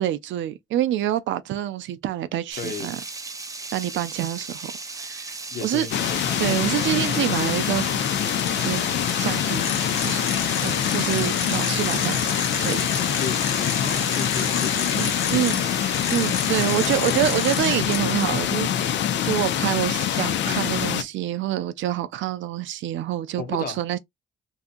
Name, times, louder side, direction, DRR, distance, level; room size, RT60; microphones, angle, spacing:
voice 1, 0.0-3.0 3.7-4.7 5.0-5.3 5.6-5.9 6.4-8.0 8.6-8.8 9.2-9.7 10.0-10.2 10.6-12.3 12.6-12.9 14.9-15.6 16.1-24.0, right 12 dB, 75° right, 0.4 m, -26 dB
sound 1, 2.5-17.0, right 3 dB, 15° right, 0.5 m, -36 dB
voice 2, 2.6-2.9 5.5-6.3 13.2-15.0 15.4-15.8 16.6-17.2 23.4-23.8, left 6 dB, 50° left, 0.8 m, -34 dB
sound 2, 5.9-21.0, left 10 dB, 65° left, 0.4 m, -25 dB
sound 3, 8.3-8.8 9.1-9.2 9.6-15.6 15.9-18.0, left 6 dB, 85° left, 1.0 m, -31 dB
2.7 x 2.4 x 2.5 m
cardioid pair, 90°, 20 cm